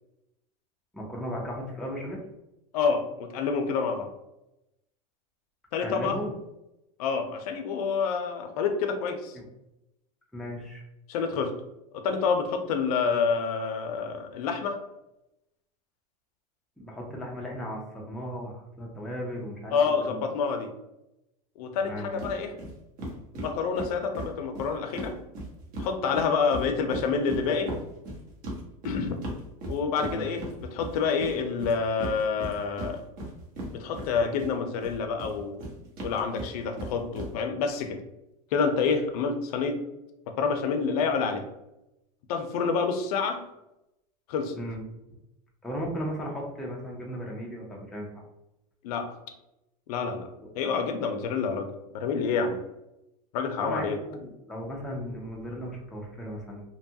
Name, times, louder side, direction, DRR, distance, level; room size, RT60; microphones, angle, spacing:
voice 1, 0.9-2.2 5.8-6.3 9.3-9.4 10.3-10.8 16.8-20.3 21.8-22.2 30.0-30.2 44.6-44.8 45.6-48.1 53.6-56.6, equal, ahead, -2 dB, 0.4 m, -36 dB
voice 2, 2.7-4.1 5.7-6.2 7.0-9.4 11.1-11.5 11.9-14.8 19.7-20.7 21.6-22.5 23.3-25.2 25.8-27.8 28.8-29.2 29.7-33.0 33.7-35.6 36.0-38.0 38.5-39.8 40.3-41.4 42.3-43.5 44.3-44.5 48.8-49.2 49.9-51.7 51.9-52.6 53.3-54.0, left 5 dB, 75° left, 6 dB, 0.5 m, -28 dB
sound 1, 22.2-22.3 22.6-22.7 23.0-25.9 26.1-34.5 34.8-37.3, right 1 dB, 45° right, 0.9 m, -37 dB
2.8 x 2.3 x 2.7 m, 0.90 s
supercardioid pair, 150°, 20 cm